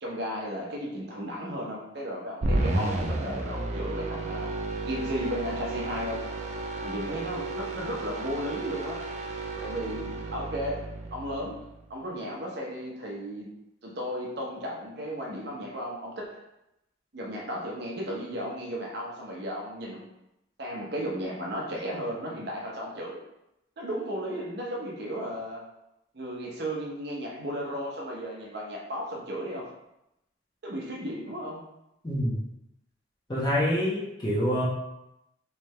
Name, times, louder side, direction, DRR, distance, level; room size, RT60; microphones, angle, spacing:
voice 1, 0.0-4.5 4.8-6.3 6.8-9.1 9.6-13.5 13.8-16.4 17.1-20.1 20.6-23.2 23.8-25.7 26.1-29.7 30.6-31.7, equal, 55° right, -2 dB, 0.7 m, -35 dB
sound 1, 2.4-11.8, right 2 dB, 35° right, 0.4 m, -32 dB
voice 2, 32.0-32.4 33.3-34.6, equal, 20° left, -6 dB, 0.9 m, -26 dB
3.4 x 3.3 x 3.2 m, 0.87 s
head